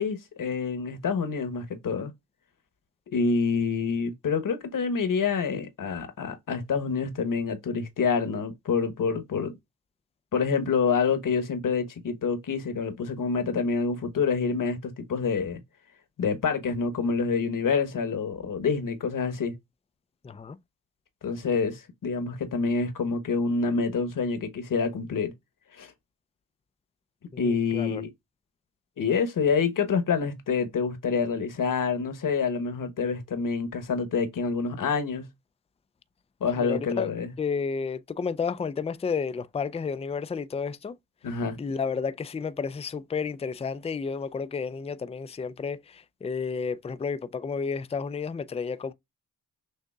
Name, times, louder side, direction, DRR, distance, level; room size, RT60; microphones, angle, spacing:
voice 1, 0.0-2.1 3.1-9.5 10.3-15.6 16.2-19.5 21.2-25.3 25.8-25.9 27.4-28.1 29.0-35.3 36.4-37.3 41.2-41.6, left 5 dB, 55° left, 1.2 m, -27 dB
voice 2, 20.2-20.6 27.3-28.0 36.6-37.1 37.4-41.0 41.6-48.9, left 5 dB, 15° left, 0.4 m, -31 dB
6.6 x 2.6 x 2.4 m
supercardioid pair, 55°, 39 cm